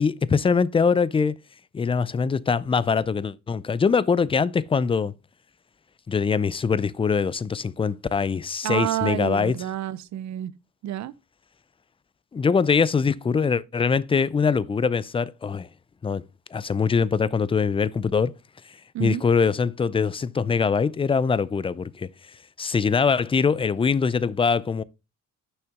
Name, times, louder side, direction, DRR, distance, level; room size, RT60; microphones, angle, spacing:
voice 1, 0.0-1.3 1.7-5.1 6.1-9.6 12.3-15.7 16.0-16.2 16.5-18.3 19.0-22.1 22.6-24.8, left 5 dB, 20° left, 0.4 m, -23 dB
voice 2, 8.6-10.5 10.8-11.1 18.9-19.2, right 12 dB, 65° right, 0.6 m, -28 dB
6.4 x 5.8 x 3.5 m
cardioid pair, 90°, 30 cm